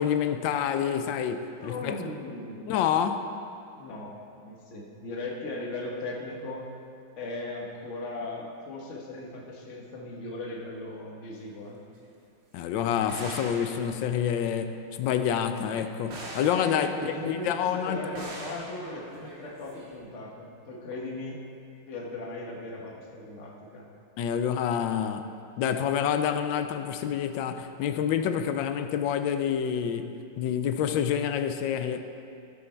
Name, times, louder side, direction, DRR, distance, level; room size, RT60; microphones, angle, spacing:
voice 1, 0.0-2.0 2.7-3.3 12.5-18.1 18.5-18.6 24.2-25.3 25.6-32.0, left 8 dB, 75° left, 9 dB, 1.2 m, -28 dB
voice 2, 1.5-2.9 3.8-4.1 4.4-6.6 7.2-11.8 16.6-21.4 21.9-23.9, left 2 dB, 40° left, -2 dB, 1.5 m, -38 dB
sound 1, 11.3-11.4 12.0-12.1 13.1-14.6 15.6-17.9 18.2-20.0, right 1 dB, 65° right, 2.2 m, -43 dB
13.0 x 7.9 x 4.5 m, 2.5 s
omnidirectional pair, 2.3 m